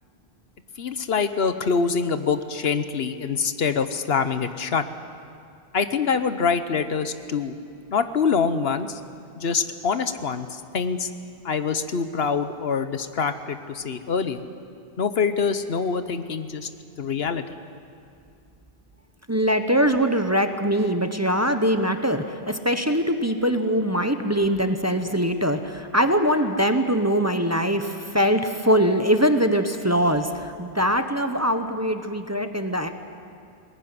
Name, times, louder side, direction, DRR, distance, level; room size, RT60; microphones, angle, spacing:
voice 1, 0.8-4.8 5.7-7.6 7.9-9.0 9.4-11.1 11.4-14.4 15.0-16.7 17.0-17.4, left 5 dB, 70° left, 10 dB, 1.2 m, -25 dB
voice 2, 19.3-32.9, equal, 15° right, 7 dB, 1.0 m, -22 dB
21.5 x 19.0 x 9.5 m, 2.4 s
omnidirectional pair, 1.1 m